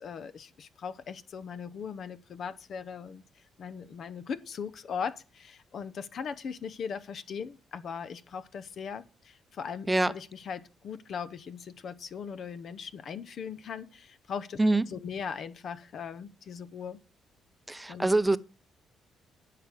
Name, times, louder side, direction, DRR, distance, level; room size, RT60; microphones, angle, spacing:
voice 1, 0.0-3.2 3.6-14.6 14.9-17.0 17.9-18.1, left 6 dB, 60° left, 0.9 m, -39 dB
voice 2, 17.7-18.4, right 2 dB, 10° right, 0.7 m, -24 dB
10.0 x 6.8 x 6.0 m
cardioid pair, 90°, 0 cm